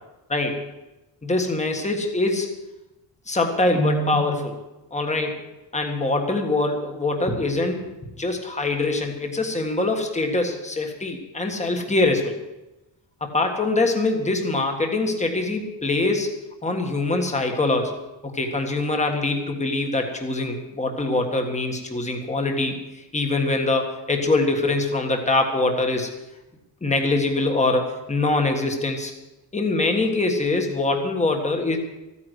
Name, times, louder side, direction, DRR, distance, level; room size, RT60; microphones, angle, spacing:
voice 1, 1.2-2.5 3.3-4.6 4.9-5.4 5.7-7.9 8.1-12.3 13.2-18.0 18.2-22.7 23.1-26.1 26.8-29.1 29.5-31.8, left 2 dB, 15° left, 3 dB, 1.7 m, -23 dB
14.5 x 9.8 x 8.1 m, 1.0 s
wide cardioid pair, 180°, 45 cm